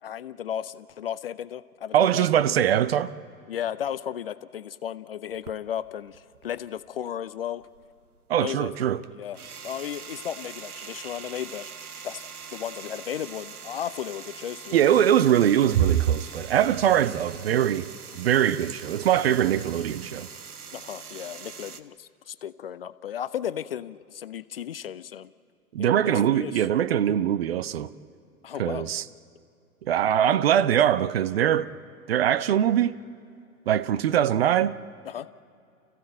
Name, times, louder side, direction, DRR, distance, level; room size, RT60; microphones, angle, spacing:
voice 1, 0.0-2.4 3.5-7.6 8.4-8.7 9.1-9.4 9.6-11.7 12.0-12.2 12.5-14.9 20.7-25.3 25.8-26.6 28.4-28.9 35.0-35.3, left 9 dB, 40° left, 0.5 m, -34 dB
voice 2, 1.9-3.1 8.3-9.0 14.7-17.9 18.1-20.3 25.7-27.9 28.6-29.0 29.8-31.7 32.1-33.0 33.7-34.8, right 10 dB, 45° right, 0.6 m, -22 dB
sound 1, 5.3-7.1 7.4-21.8, right 6 dB, 75° right, 1.1 m, -43 dB
29.5 x 15.0 x 8.9 m
figure-of-eight pair, 110°, 45 cm